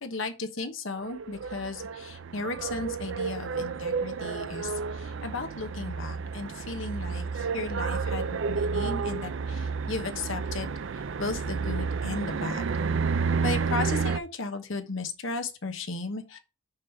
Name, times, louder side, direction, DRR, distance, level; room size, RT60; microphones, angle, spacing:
voice 1, 0.0-12.7 13.4-16.4, left 3 dB, 65° left, 1.0 m, -35 dB
sound 1, 1.0-14.2, right 5 dB, 60° right, 0.4 m, -31 dB
5.5 x 5.2 x 4.5 m
head